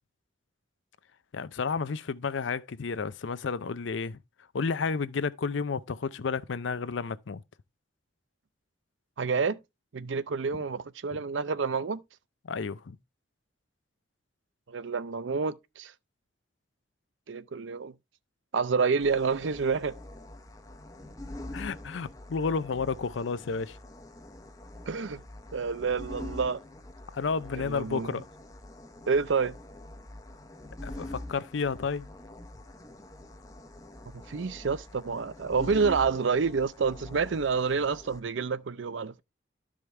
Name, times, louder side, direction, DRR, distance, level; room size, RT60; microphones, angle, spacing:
voice 1, 1.3-4.2 4.5-7.4 12.4-13.0 21.5-23.8 27.1-28.2 30.8-32.1, left 5 dB, 80° left, 0.5 m, -31 dB
voice 2, 9.2-9.6 9.9-12.0 14.7-15.9 17.3-17.9 18.5-20.0 24.9-25.2 25.5-26.6 27.6-28.2 29.1-29.6 34.1-39.2, right 5 dB, 80° right, 0.5 m, -28 dB
sound 1, 19.0-38.2, left 1 dB, 20° left, 0.7 m, -45 dB
12.0 x 5.0 x 3.3 m
head